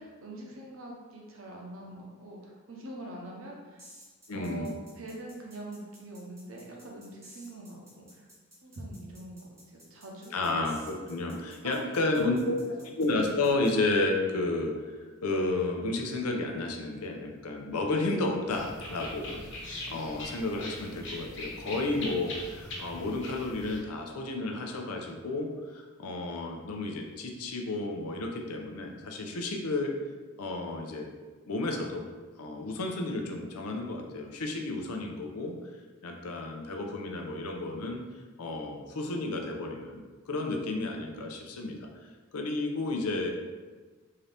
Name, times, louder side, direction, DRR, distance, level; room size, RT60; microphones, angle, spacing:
voice 1, 0.0-3.8 4.3-8.3 8.6-10.3 11.6-12.7, right 1 dB, 65° right, -1 dB, 0.7 m, -44 dB
sound 1, 3.8-13.7, equal, 10° right, 0.7 m, -54 dB
voice 2, 4.3-4.7 10.3-12.5 12.9-14.9 15.2-29.9 30.4-31.1 31.5-32.0 32.4-35.5 36.0-38.0 38.4-41.9 42.3-43.3, left 2 dB, 85° left, 2 dB, 0.6 m, -32 dB
sound 2, 18.5-23.8, left 1 dB, 55° left, 1.0 m, -41 dB
3.7 x 2.7 x 3.3 m, 1.4 s
head